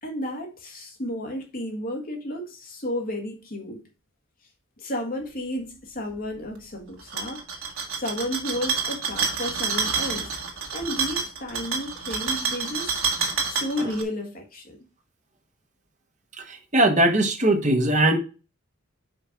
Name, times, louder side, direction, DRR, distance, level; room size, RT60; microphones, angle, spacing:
voice 1, 0.0-3.8 4.8-10.3 10.7-13.0 13.4-14.8, left 1 dB, 40° left, 1.7 m, -32 dB
sound 1, 7.0-14.0, right 5 dB, 75° right, 1.7 m, -28 dB
voice 2, 16.7-18.2, right 1 dB, 35° right, 1.2 m, -19 dB
5.3 x 4.4 x 5.8 m
head